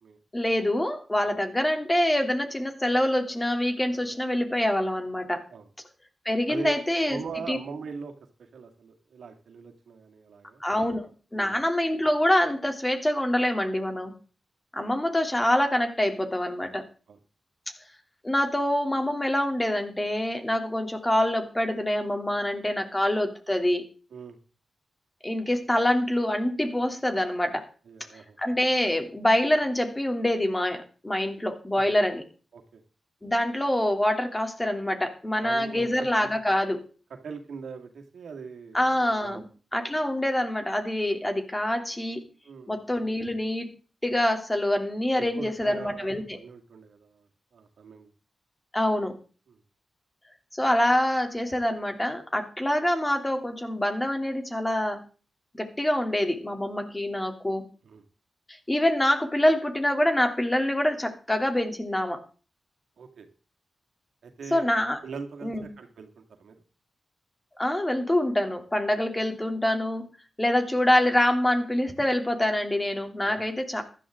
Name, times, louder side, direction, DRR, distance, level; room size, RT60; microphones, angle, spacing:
voice 1, 0.3-5.4 6.2-7.2 7.5-7.6 10.6-14.1 14.7-16.8 18.2-23.8 25.2-27.7 28.4-32.2 33.2-36.8 38.7-39.4 39.7-42.2 42.7-43.7 44.0-46.4 48.7-49.2 50.5-55.0 55.5-57.6 58.5-62.2 64.5-65.0 65.4-65.7 67.6-70.0 70.4-73.8, left 1 dB, 20° left, 5 dB, 3.1 m, -25 dB
voice 2, 7.0-8.1 8.4-10.6 11.3-11.6 13.7-13.8 14.7-14.9 17.1-17.2 24.1-24.4 27.9-28.4 31.7-31.9 32.5-32.8 35.4-35.9 37.1-38.8 39.2-39.5 42.4-42.8 45.1-48.1 49.5-49.6 57.8-58.0 63.0-63.3 64.2-64.7 65.0-66.6 73.2-73.4, right 5 dB, 80° right, 5 dB, 2.1 m, -41 dB
15.0 x 11.5 x 3.8 m, 0.38 s
cardioid pair, 50°, 0 cm